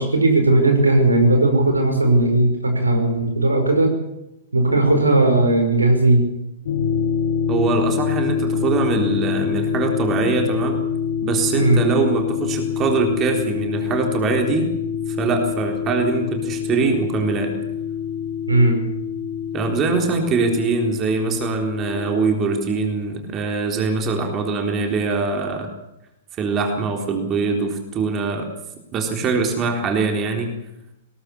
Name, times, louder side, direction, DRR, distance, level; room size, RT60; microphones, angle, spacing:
voice 1, 0.0-4.0 4.5-6.2 11.6-11.8 18.5-18.8, right 2 dB, 80° right, 5 dB, 5.3 m, -17 dB
sound 1, 6.7-22.6, left 7 dB, 55° left, 3.2 m, -25 dB
voice 2, 7.5-10.8 11.2-14.7 15.1-17.5 19.5-25.7 26.4-28.5 28.9-30.5, right 4 dB, 25° right, 3 dB, 4.0 m, -22 dB
21.0 x 19.0 x 7.0 m, 0.86 s
figure-of-eight pair, 105°, 0 cm